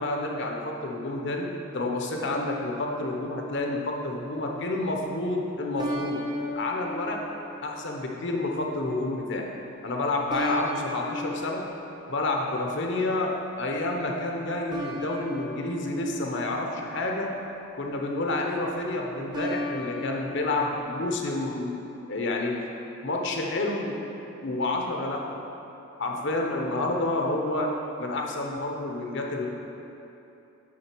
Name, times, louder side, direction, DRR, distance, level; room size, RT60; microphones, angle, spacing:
voice 1, 0.0-1.5 1.7-6.2 6.5-7.2 7.6-9.4 9.8-11.6 12.1-13.3 13.6-17.3 17.8-21.8 22.1-22.5 23.0-24.0 24.4-25.4 26.0-27.7 28.0-29.5, left 2 dB, 60° left, 1 dB, 0.9 m, -29 dB
sound 1, 2.1-3.5 5.8-8.3 10.3-12.9 14.7-17.2 19.3-21.6, equal, 20° right, 0.8 m, -37 dB
8.8 x 3.9 x 6.0 m, 3.0 s
head